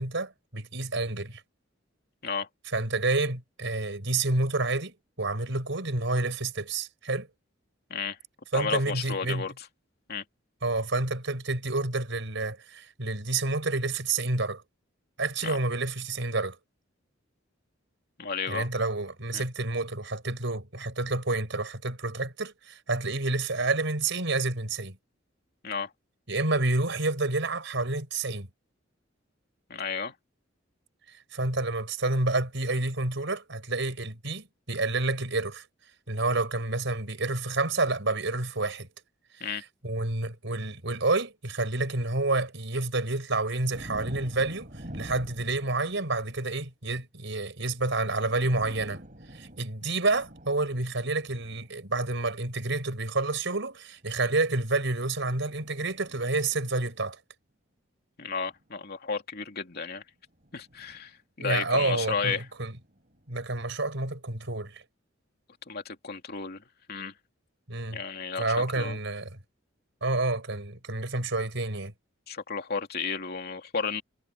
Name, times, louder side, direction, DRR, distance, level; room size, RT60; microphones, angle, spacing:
voice 1, 0.0-1.4 2.7-7.3 8.5-9.5 10.6-14.6 15.2-16.6 18.5-25.0 26.3-28.5 31.1-35.7 36.1-38.9 39.4-49.0 49.3-57.2 61.4-62.8 63.3-64.8 67.7-68.0 68.4-69.4 70.0-71.9, right 2 dB, 70° right, 5.4 m, -29 dB
voice 2, 8.5-9.5 10.1-10.2 15.4-15.6 18.2-18.7 19.3-19.4 25.6-25.9 29.7-30.1 39.4-39.6 58.2-60.0 60.5-61.1 61.4-62.4 65.7-66.6 66.9-67.1 67.9-69.0 72.3-74.0, left 5 dB, 55° left, 2.8 m, -32 dB
sound 1, 43.7-46.4 47.7-47.8 48.1-51.7 52.6-52.9 54.0-57.0 58.5-58.6 60.3-61.1 61.9-63.3, equal, 45° right, 8.0 m, -47 dB
head